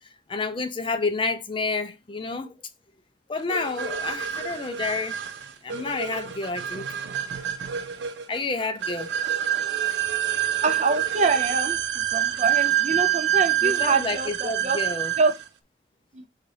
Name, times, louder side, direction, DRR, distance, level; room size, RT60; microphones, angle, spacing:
voice 1, 0.3-2.6 3.3-5.2 5.6-6.9 8.3-9.1 13.6-15.1, left 3 dB, 30° left, 0.5 m, -29 dB
sound 1, 3.5-15.4, right 10 dB, 90° right, 0.6 m, -27 dB
voice 2, 10.3-14.8 15.2-15.3 16.1-16.2, right 4 dB, 40° right, 0.5 m, -25 dB
4.1 x 2.6 x 4.7 m
head